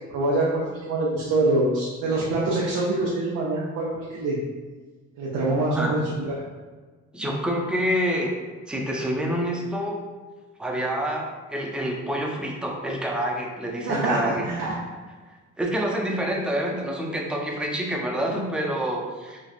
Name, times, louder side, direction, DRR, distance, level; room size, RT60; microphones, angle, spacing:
voice 1, 0.0-4.4 5.2-6.3 13.9-14.8, right 2 dB, 80° right, -5 dB, 0.6 m, -25 dB
voice 2, 7.1-8.3 8.7-10.0 10.6-14.5 15.6-19.4, equal, 5° right, -1 dB, 0.4 m, -27 dB
3.1 x 2.4 x 2.4 m, 1.3 s
cardioid pair, 90°, 30 cm